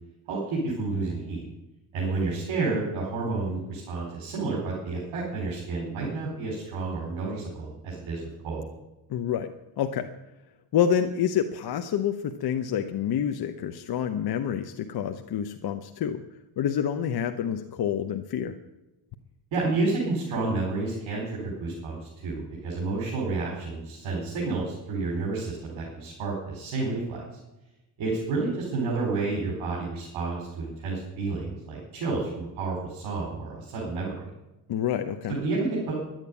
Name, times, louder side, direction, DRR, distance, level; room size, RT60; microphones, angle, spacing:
voice 1, 0.3-1.4 1.9-8.7 19.5-27.2 28.0-34.2 35.3-35.9, right 3 dB, 70° right, -3 dB, 4.7 m, -30 dB
voice 2, 9.1-9.5 9.8-10.1 10.7-16.2 16.6-18.5 34.7-35.4, left 9 dB, 50° left, 7 dB, 1.0 m, -28 dB
11.5 x 9.2 x 9.7 m, 1.0 s
cardioid pair, 110°, 49 cm